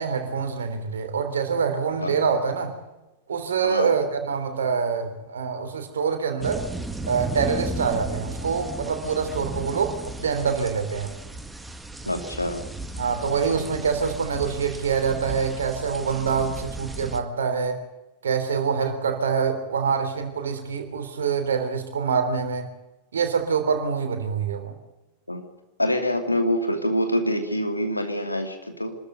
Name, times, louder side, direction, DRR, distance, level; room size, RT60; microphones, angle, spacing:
voice 1, 0.0-2.7 3.3-6.7 7.1-11.1 13.0-17.9 18.2-22.7 23.1-24.8, right 6 dB, 65° right, 7 dB, 3.3 m, -25 dB
voice 2, 3.6-4.0 12.1-12.6 25.3-25.4 25.8-29.0, equal, 85° left, 6 dB, 2.7 m, -25 dB
sound 1, 6.4-17.2, right 2 dB, 5° right, 1.8 m, -35 dB
25.5 x 13.5 x 8.1 m, 1.0 s
figure-of-eight pair, 90°, 0 cm